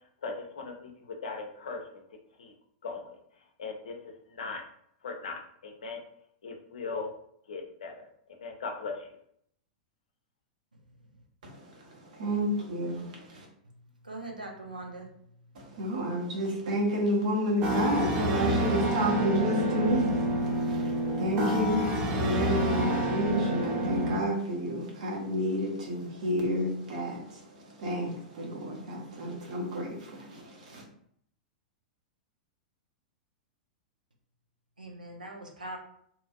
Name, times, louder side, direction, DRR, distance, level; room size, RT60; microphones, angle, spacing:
voice 1, 0.2-0.9 1.2-1.8 2.4-2.5 2.8-3.2 3.6-4.0 4.3-4.6 5.0-6.0 6.4-7.1 7.5-8.1 8.4-9.1, left 4 dB, 65° left, 3 dB, 0.6 m, -38 dB
voice 2, 11.4-13.5 15.5-30.8, equal, 60° right, -1 dB, 1.0 m, -30 dB
voice 3, 13.6-15.4 34.8-35.8, right 2 dB, 85° right, 1 dB, 0.6 m, -42 dB
sound 1, 17.6-24.2, right 1 dB, 35° right, 0.6 m, -28 dB
2.9 x 2.5 x 2.3 m, 0.67 s
figure-of-eight pair, 100°, 4 cm